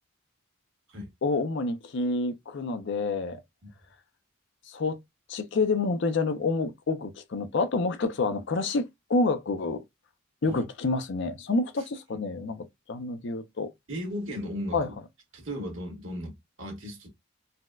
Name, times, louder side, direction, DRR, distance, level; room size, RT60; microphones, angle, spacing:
voice 1, 1.2-3.4 4.7-5.0 5.3-9.8 10.4-13.7 14.7-14.9, left 3 dB, 55° left, 0.5 m, -28 dB
voice 2, 13.9-14.9 15.3-17.1, equal, 60° right, 1.5 m, -36 dB
4.0 x 2.1 x 2.3 m
head